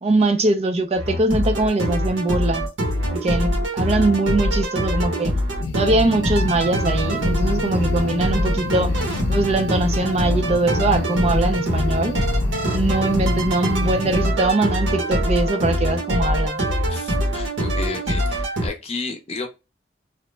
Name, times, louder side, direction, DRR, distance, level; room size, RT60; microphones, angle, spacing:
voice 1, 0.0-2.7 3.1-5.3 5.7-8.9 9.3-12.2 12.7-16.6, right 2 dB, 35° right, 0.4 m, -22 dB
sound 1, 0.9-18.7, equal, 85° right, 1.0 m, -23 dB
sound 2, 5.6-14.3, left 4 dB, 75° left, 0.3 m, -31 dB
voice 2, 16.9-19.5, left 3 dB, 35° left, 0.6 m, -32 dB
2.9 x 2.1 x 3.1 m
head